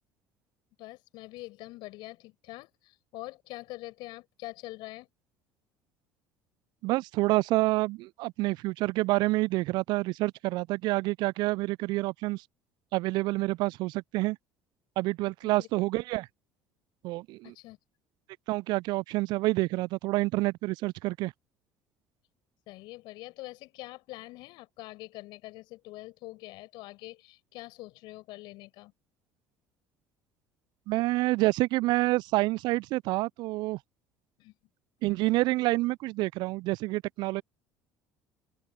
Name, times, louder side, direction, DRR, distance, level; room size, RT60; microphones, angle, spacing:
voice 1, 0.8-5.1 15.4-15.7 17.4-17.8 22.7-28.9 34.4-34.5, left 20 dB, 60° left, 6.4 m, -44 dB
voice 2, 6.8-12.4 12.9-14.4 15.0-16.3 17.0-17.5 18.5-21.3 30.9-33.8 35.0-37.4, right 20 dB, 60° right, 0.5 m, -28 dB
open air
figure-of-eight pair, 60°, 9 cm